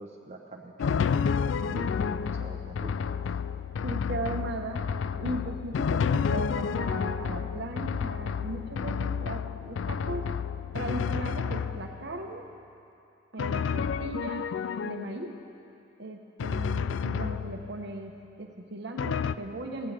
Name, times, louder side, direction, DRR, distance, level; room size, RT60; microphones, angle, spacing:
voice 1, 0.0-2.9, right 2 dB, 35° right, -1 dB, 0.9 m, -44 dB
Drum, 0.8-12.2 13.4-15.4 16.4-17.9 19.0-19.4, left 6 dB, 70° left, 0.3 m, -30 dB
voice 2, 3.8-4.8 5.2-10.3 10.7-12.5 13.3-14.5 14.8-15.3 16.0-19.9, right 2 dB, 60° right, 3 dB, 1.1 m, -37 dB
17.0 x 16.0 x 3.4 m, 2.6 s
head